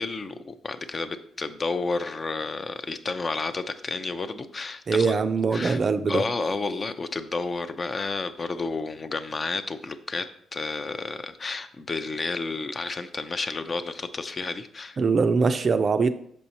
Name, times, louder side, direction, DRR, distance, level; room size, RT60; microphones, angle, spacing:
voice 1, 0.0-5.1 5.5-5.8 6.1-15.0, left 3 dB, 35° left, 10 dB, 0.4 m, -31 dB
voice 2, 4.9-6.2 15.0-16.1, right 4 dB, 40° right, 10 dB, 0.4 m, -22 dB
6.2 x 5.4 x 2.9 m, 0.67 s
cardioid pair, 90°, 0 cm